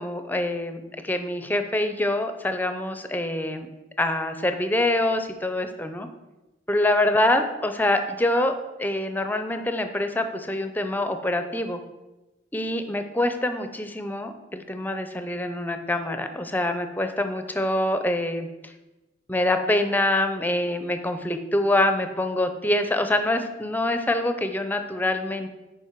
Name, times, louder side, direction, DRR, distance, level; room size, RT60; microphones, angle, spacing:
voice 1, 0.0-3.7 4.0-6.1 6.7-8.5 8.8-11.8 12.5-18.5 19.3-25.5, left 1 dB, 10° left, 8 dB, 0.6 m, -25 dB
10.5 x 4.8 x 4.6 m, 1.0 s
head